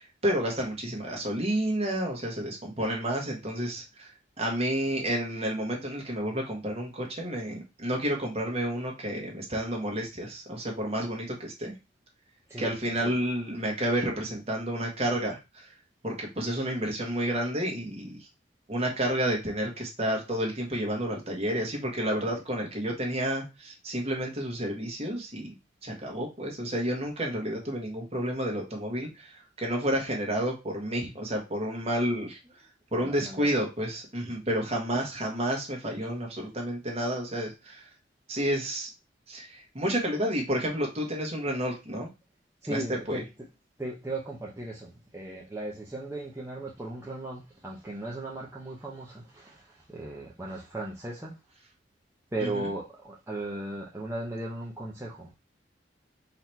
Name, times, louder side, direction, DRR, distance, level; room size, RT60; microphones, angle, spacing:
voice 1, 0.0-4.1 4.4-11.7 12.6-15.7 16.0-18.3 18.7-25.5 25.8-29.3 29.6-32.4 32.9-37.9 38.3-38.9 39.3-42.1 42.7-42.8 43.1-43.2 52.4-52.5, right 1 dB, 30° right, 0 dB, 1.3 m, -30 dB
voice 2, 12.5-13.1 33.0-33.5 42.6-43.3 43.8-51.4 52.3-55.4, right 2 dB, 15° right, -4 dB, 0.8 m, -37 dB
4.1 x 2.9 x 4.5 m, 0.25 s
head